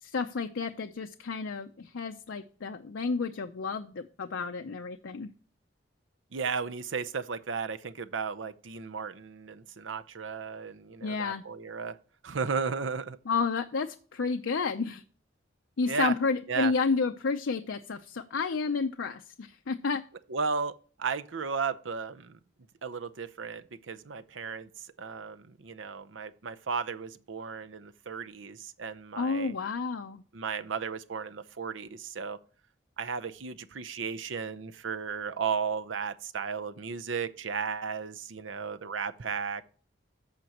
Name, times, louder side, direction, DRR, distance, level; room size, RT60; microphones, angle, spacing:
voice 1, 0.0-5.3 11.0-11.4 13.3-15.0 15.8-20.0 29.2-30.2, left 4 dB, 85° left, 0.6 m, -31 dB
voice 2, 6.3-12.0 12.2-13.2 15.9-16.1 16.5-16.7 20.3-22.4 22.8-29.5 30.3-32.4 33.0-39.6, right 5 dB, 85° right, 0.7 m, -34 dB
14.0 x 5.2 x 2.9 m
head